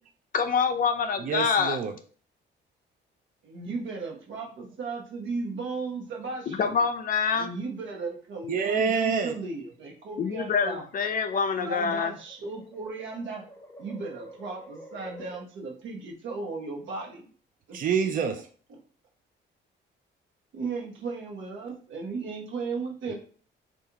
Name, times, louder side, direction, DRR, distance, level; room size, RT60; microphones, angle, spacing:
voice 1, 0.3-1.8 6.5-7.5 10.2-12.1, left 6 dB, 45° left, 7 dB, 0.5 m, -26 dB
voice 2, 1.2-1.9 8.5-9.3 17.7-18.5 23.1-23.2, right 6 dB, 45° right, 5 dB, 0.4 m, -27 dB
voice 3, 3.4-6.8 7.3-10.8 11.6-13.4 13.8-17.3 17.7-17.8 20.5-23.1, right 4 dB, 75° right, 1 dB, 0.9 m, -36 dB
sound 1, 6.8-7.6 8.8-9.2 10.1-15.4, right 1 dB, 10° left, 0.7 m, -49 dB
3.7 x 2.5 x 2.8 m, 0.43 s
cardioid pair, 90°, 20 cm